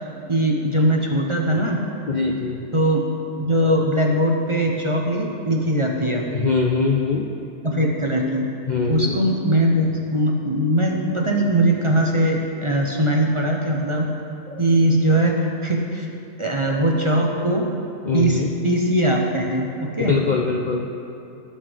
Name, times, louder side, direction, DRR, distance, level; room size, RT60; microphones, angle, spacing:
voice 1, 0.3-1.8 2.7-3.1 3.4-6.3 7.6-8.5 8.9-14.1 14.6-16.1 16.4-17.7 18.1-20.2, right 1 dB, 30° right, 0 dB, 0.6 m, -20 dB
voice 2, 2.1-2.6 6.3-7.3 8.7-9.2 14.5-14.6 18.1-18.5 20.0-20.9, left 4 dB, 85° left, 1 dB, 0.4 m, -22 dB
18.5 x 7.3 x 3.4 m, 2.7 s
omnidirectional pair, 1.6 m